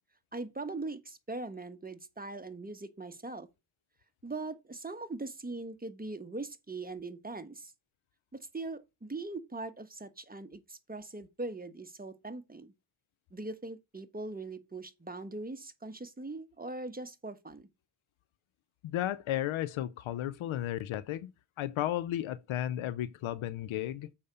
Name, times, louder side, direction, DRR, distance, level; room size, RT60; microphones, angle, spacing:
voice 1, 0.3-3.5 4.2-7.7 8.3-12.7 13.3-17.7, right 3 dB, 20° right, 1.3 m, -41 dB
voice 2, 18.8-21.3 21.6-24.1, left 12 dB, 90° left, 0.6 m, -34 dB
6.9 x 5.2 x 6.6 m
cardioid pair, 50°, 47 cm